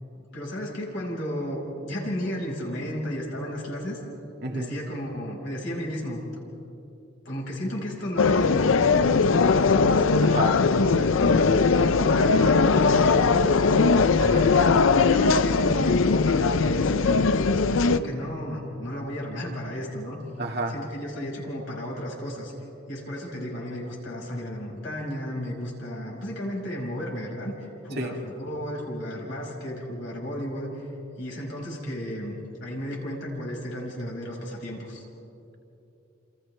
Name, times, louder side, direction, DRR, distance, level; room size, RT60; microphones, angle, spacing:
voice 1, 0.3-4.0 4.5-6.2 7.2-8.8 9.1-10.0 10.5-13.8 14.4-20.2 20.7-22.5 22.9-30.9 31.2-35.0, equal, 65° left, -2 dB, 5.6 m, -33 dB
voice 2, 4.4-4.7 10.2-10.6 14.2-14.5 20.4-20.8 28.0-28.1, right 1 dB, 55° right, 2 dB, 2.0 m, -30 dB
sound 1, 8.2-18.0, left 4 dB, 85° left, 0.6 m, -20 dB
29.0 x 28.0 x 3.4 m, 3.0 s
head